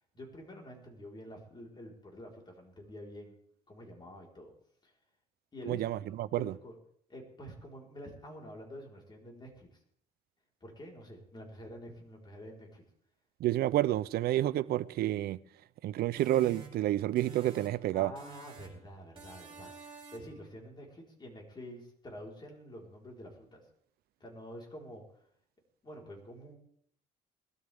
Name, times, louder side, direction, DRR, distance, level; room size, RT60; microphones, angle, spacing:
voice 1, 0.1-3.4 3.7-4.5 4.8-4.9 5.5-6.7 7.1-9.8 10.6-12.8 17.9-23.6 24.2-25.0 25.8-26.6, equal, 25° left, 4.4 m, -48 dB
voice 2, 5.7-6.5 13.4-15.4 15.8-18.1, right 14 dB, 65° right, 0.6 m, -29 dB
sound 1, 16.2-17.9 18.2-18.8 19.2-20.4, right 4 dB, 30° right, 2.9 m, -50 dB
20.5 x 13.0 x 3.6 m
cardioid pair, 110°, 17 cm